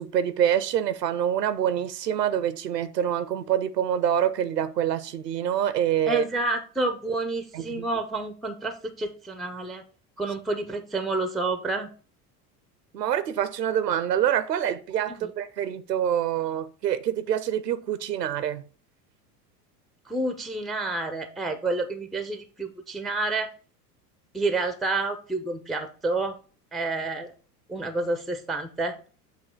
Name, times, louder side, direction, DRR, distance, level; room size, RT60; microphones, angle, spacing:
voice 1, 0.0-6.2 7.5-7.9 12.9-18.6, right 10 dB, 85° right, 0.7 m, -26 dB
voice 2, 6.1-9.8 10.2-11.9 15.1-15.3 20.1-23.5 24.3-26.3 26.7-27.3 27.7-29.0, right 3 dB, ahead, 0.3 m, -29 dB
7.7 x 2.7 x 5.1 m
hypercardioid pair, 80°, 48 cm